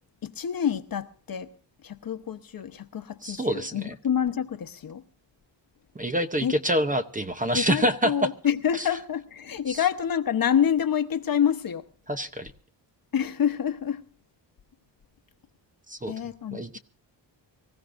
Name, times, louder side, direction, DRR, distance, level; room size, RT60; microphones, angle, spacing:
voice 1, 0.2-1.5 1.8-5.0 6.4-6.6 7.5-11.9 13.1-14.0 16.1-16.8, left 8 dB, 50° left, 1.0 m, -27 dB
voice 2, 3.2-3.9 5.9-8.3 8.8-8.9 9.7-9.8 12.1-12.5 15.9-16.1 16.5-16.8, right 1 dB, 20° right, 0.8 m, -27 dB
24.5 x 15.5 x 2.6 m
wide cardioid pair, 125°, 44 cm